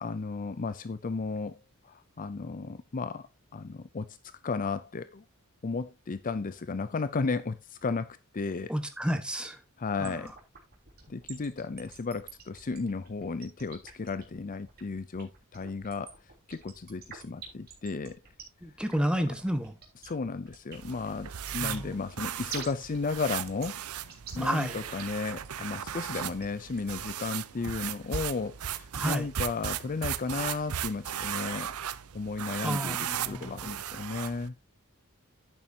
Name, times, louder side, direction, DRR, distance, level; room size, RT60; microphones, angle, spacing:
voice 1, 0.0-1.6 1.8-5.2 5.6-8.7 9.8-10.3 11.1-16.1 16.5-18.2 19.0-19.4 20.0-31.7 32.1-34.5, left 4 dB, 40° left, 0.5 m, -34 dB
voice 2, 8.7-9.6 10.0-10.2 18.6-19.7 21.6-21.8 24.4-24.8 28.9-29.3 32.6-33.5, equal, 5° right, 1.4 m, -30 dB
sound 1, 10.0-27.0, right 6 dB, 45° right, 3.4 m, -46 dB
sound 2, 20.7-34.5, right 9 dB, 80° right, 0.6 m, -37 dB
11.0 x 9.1 x 2.8 m
head